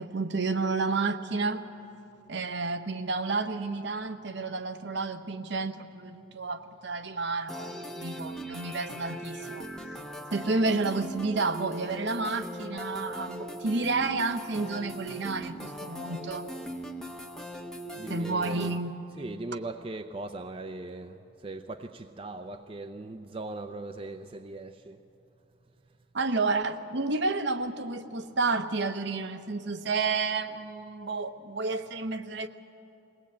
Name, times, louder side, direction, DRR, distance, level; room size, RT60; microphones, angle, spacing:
voice 1, 0.0-1.6 2.3-9.7 10.3-16.5 18.1-18.9 26.1-32.5, right 3 dB, 60° right, 9 dB, 0.9 m, -30 dB
sound 1, 7.5-18.8, equal, 5° left, 0.8 m, -40 dB
voice 2, 17.9-18.8 19.1-25.0, right 2 dB, 30° right, 6 dB, 0.5 m, -39 dB
21.5 x 17.5 x 8.5 m, 2.8 s
head